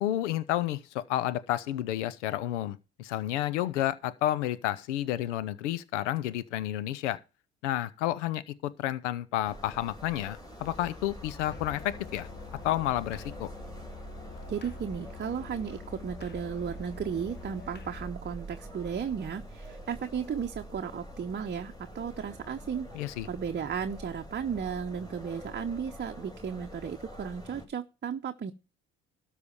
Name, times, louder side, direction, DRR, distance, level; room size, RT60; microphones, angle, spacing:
voice 1, 0.0-7.2 7.6-12.3 12.6-13.5 22.9-23.3, left 13 dB, 85° left, 0.6 m, -31 dB
sound 1, 9.4-27.7, right 1 dB, 10° left, 3.5 m, -45 dB
Musical instrument, 11.5-18.2, left 8 dB, 30° left, 1.1 m, -47 dB
voice 2, 14.5-28.5, right 7 dB, 30° right, 0.8 m, -35 dB
13.0 x 5.0 x 6.9 m
hypercardioid pair, 55°, 34 cm